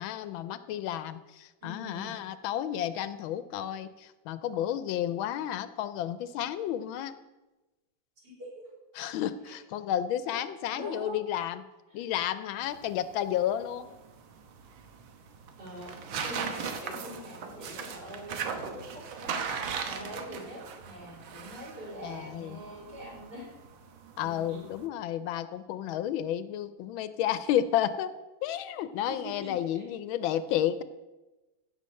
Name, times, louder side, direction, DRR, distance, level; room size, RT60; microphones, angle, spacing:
voice 1, 0.0-7.1 8.9-11.6 11.9-13.9 22.0-22.6 24.2-28.1 28.4-30.8, left 11 dB, 80° left, 13 dB, 1.4 m, -31 dB
voice 2, 1.6-2.1 8.2-8.5 10.7-11.2 11.9-12.0 15.6-18.4 18.7-19.5 19.9-23.5 24.2-24.6 29.1-29.8, equal, 55° right, -5 dB, 5.3 m, -43 dB
sound 1, 12.6-24.9, right 6 dB, 80° right, 1.8 m, -39 dB
15.5 x 5.7 x 6.4 m, 1.1 s
omnidirectional pair, 2.2 m